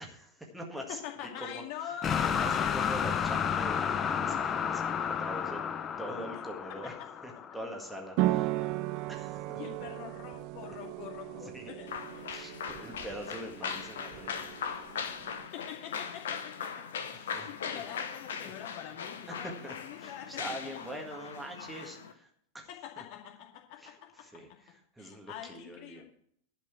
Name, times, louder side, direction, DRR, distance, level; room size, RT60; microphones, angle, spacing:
voice 1, 0.0-1.0 1.4-1.9 2.2-5.6 6.0-7.0 7.2-8.6 9.1-9.6 11.4-11.7 12.3-14.3 14.6-14.9 17.1-17.5 18.4-18.5 19.3-19.4 19.6-22.3 22.5-22.7 23.0-23.1 23.8-26.0, equal, 5° right, 1 dB, 1.8 m, -43 dB
voice 2, 0.9-2.9 6.8-7.1 9.5-12.3 15.2-20.7 22.7-24.6 25.0-26.0, left 10 dB, 45° left, 2 dB, 2.3 m, -45 dB
sound 1, 2.0-8.1, left 7 dB, 25° left, 0.7 m, -31 dB
sound 2, 8.2-15.5, right 16 dB, 45° right, 0.5 m, -36 dB
sound 3, 11.9-22.1, left 6 dB, 60° left, 1.0 m, -39 dB
11.5 x 5.4 x 8.6 m, 0.64 s
figure-of-eight pair, 90°, 0 cm